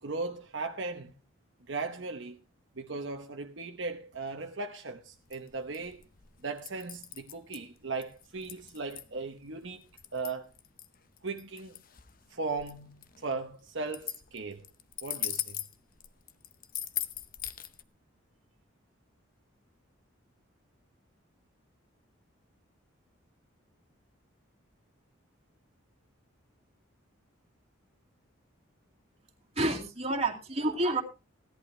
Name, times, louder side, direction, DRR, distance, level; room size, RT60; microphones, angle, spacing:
voice 1, 0.0-1.1 1.7-2.4 2.8-6.0 6.4-10.5 11.2-11.8 12.3-14.6 15.0-15.6, right 3 dB, 60° right, 1.0 m, -37 dB
sound 1, 5.2-17.8, left 11 dB, 40° left, 0.8 m, -40 dB
voice 2, 29.6-31.0, right 2 dB, 30° right, 2.4 m, -29 dB
16.5 x 11.0 x 3.3 m
head